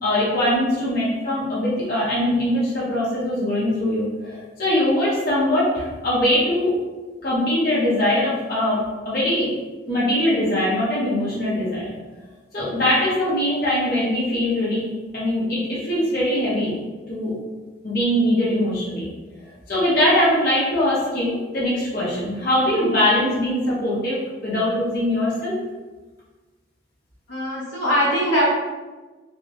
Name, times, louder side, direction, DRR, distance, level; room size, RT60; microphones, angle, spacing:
voice 1, 0.0-6.7 7.2-8.8 9.0-9.5 9.9-11.9 12.5-16.7 17.1-17.3 17.8-19.1 19.7-25.5, left 1 dB, 50° left, -8 dB, 0.9 m, -22 dB
voice 2, 27.3-28.4, equal, 85° left, -7 dB, 0.7 m, -21 dB
2.1 x 2.1 x 2.8 m, 1.3 s
head